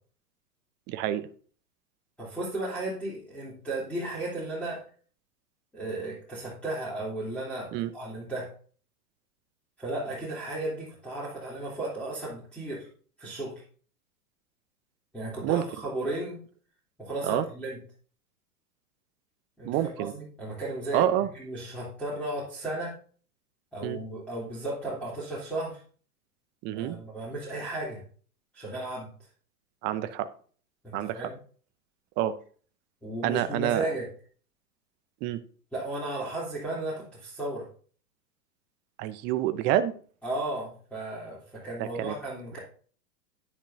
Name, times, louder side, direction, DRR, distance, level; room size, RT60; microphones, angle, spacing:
voice 1, 0.9-1.3 7.7-7.9 15.4-15.6 17.2-17.4 19.6-20.1 20.9-21.3 23.8-24.0 26.6-27.0 29.8-30.3 30.9-31.3 32.2-32.4 33.2-33.9 35.2-35.4 39.0-39.9 41.8-42.1, right 12 dB, 25° right, 12 dB, 0.6 m, -27 dB
voice 2, 2.2-4.8 5.7-8.5 9.8-12.9 13.2-13.5 15.1-16.4 17.0-17.8 19.6-21.0 21.3-22.9 23.7-25.8 26.7-28.0 28.5-29.1 30.8-31.4 33.0-34.1 35.7-37.7 40.2-42.6, right 2 dB, 5° left, -7 dB, 3.2 m, -34 dB
10.0 x 10.0 x 2.7 m, 0.44 s
figure-of-eight pair, 105°, 47 cm